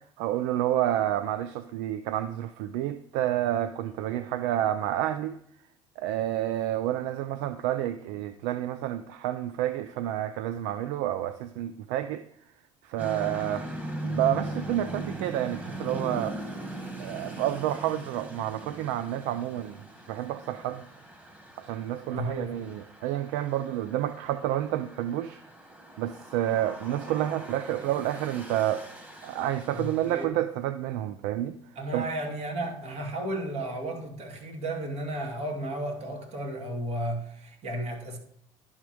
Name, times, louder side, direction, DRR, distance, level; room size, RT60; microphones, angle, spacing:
voice 1, 0.2-5.4 6.0-12.2 12.8-13.7 14.0-16.3 17.0-19.8 20.1-20.9 21.6-25.4 26.0-28.8 29.2-31.6 31.9-32.1, right 12 dB, 80° right, 0.5 m, -29 dB
sound 1, 13.0-30.2, right 1 dB, 15° right, 2.0 m, -40 dB
voice 2, 22.1-22.5 29.7-30.3 31.8-38.2, right 1 dB, 60° right, 2.6 m, -33 dB
11.0 x 3.7 x 6.1 m
supercardioid pair, 85°, 12 cm